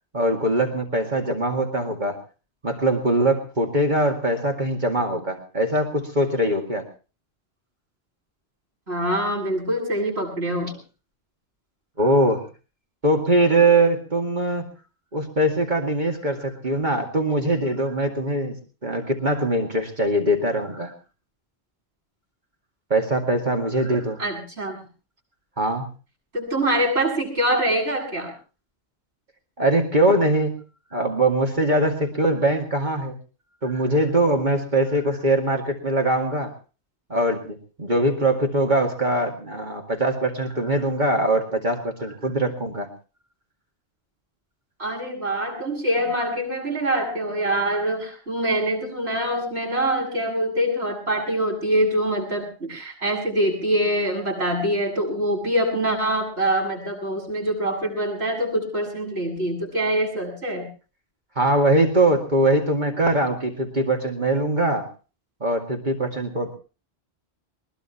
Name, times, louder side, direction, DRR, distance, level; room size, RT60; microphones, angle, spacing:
voice 1, 0.1-2.2 2.6-6.9 12.0-12.5 13.0-14.7 15.1-20.9 22.9-24.2 25.6-25.9 29.6-30.6 30.9-33.2 33.6-36.5 37.1-42.9 61.4-64.9 65.4-66.6, right 1 dB, 45° right, 1 dB, 2.4 m, -22 dB
voice 2, 8.9-10.8 24.2-24.8 26.3-28.3 44.8-60.7, right 1 dB, 85° right, 0 dB, 8.1 m, -24 dB
22.0 x 21.0 x 2.9 m, 0.36 s
omnidirectional pair, 1.1 m